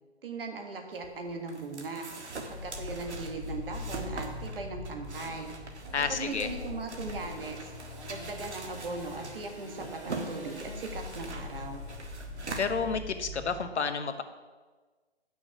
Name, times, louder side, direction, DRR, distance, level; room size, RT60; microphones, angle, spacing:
voice 1, 0.2-2.1 2.5-5.5 6.1-7.7 8.1-11.8, right 3 dB, 55° right, 4 dB, 1.6 m, -39 dB
sound 1, 0.9-13.4, right 3 dB, 90° right, 1.5 m, -43 dB
sound 2, 2.4-13.6, left 3 dB, 25° left, 3.2 m, -43 dB
Engine / Sawing, 5.2-13.4, right 2 dB, 25° right, 1.9 m, -49 dB
voice 2, 5.9-6.5 12.6-14.2, left 5 dB, 85° left, 9 dB, 1.0 m, -30 dB
9.0 x 6.2 x 5.8 m, 1.3 s
hypercardioid pair, 160°, 33 cm